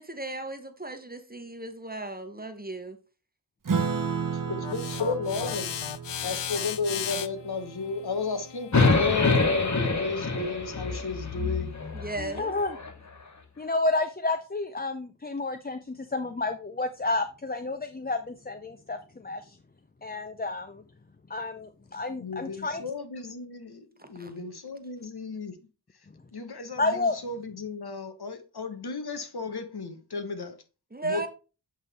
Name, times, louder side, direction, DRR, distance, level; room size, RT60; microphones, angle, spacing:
voice 1, 0.0-3.0 11.9-12.6 24.0-24.3 30.9-31.3, right 2 dB, 20° right, 1.0 m, -36 dB
Acoustic guitar / Strum, 3.7-8.5, right 5 dB, 50° right, 0.9 m, -33 dB
voice 2, 4.3-5.7 6.2-11.7 22.2-25.6 26.3-30.6 31.0-31.3, left 4 dB, 65° left, 1.0 m, -34 dB
sound 1, 4.6-9.8, left 10 dB, 85° left, 0.5 m, -36 dB
sound 2, 8.7-13.0, left 3 dB, 40° left, 1.2 m, -26 dB
voice 3, 12.2-12.8 13.6-19.6 20.0-20.8 21.3-22.8 26.8-27.2, left 2 dB, 25° left, 0.5 m, -30 dB
8.0 x 3.6 x 4.0 m
wide cardioid pair, 60°, 42 cm